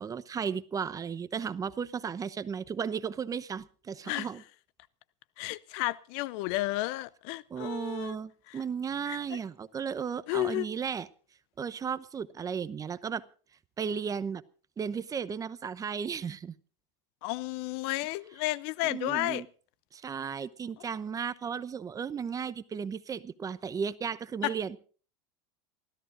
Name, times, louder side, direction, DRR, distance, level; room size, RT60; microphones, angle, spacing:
voice 1, 0.0-4.4 7.5-11.1 11.6-13.2 13.8-14.4 14.8-16.5 18.8-19.5 19.9-24.8, right 6 dB, 20° right, 0.8 m, -35 dB
voice 2, 5.4-8.2 8.5-8.6 9.1-9.4 10.3-10.7 17.2-19.4 24.4-24.5, left 18 dB, 60° left, 0.6 m, -32 dB
28.0 x 14.0 x 2.5 m
supercardioid pair, 120°, 16 cm